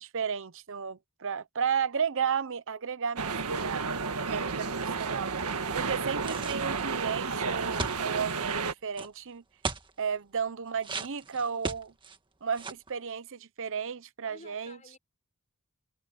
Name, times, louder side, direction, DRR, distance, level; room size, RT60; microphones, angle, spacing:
voice 1, 0.0-3.8 4.3-4.7 5.0-5.4 5.7-9.4 10.0-11.9 12.4-14.8, right 6 dB, 60° right, 0.8 m, -33 dB
sound 1, 3.2-8.7, right 4 dB, 85° right, 1.6 m, -32 dB
voice 2, 4.2-4.8 5.7-6.1 14.2-15.0, left 2 dB, 35° left, 6.2 m, -52 dB
sound 2, 6.2-6.9 7.8-8.3 8.9-9.1 9.6-9.9 10.8-12.2 12.5-12.9, right 3 dB, 20° right, 1.6 m, -36 dB
head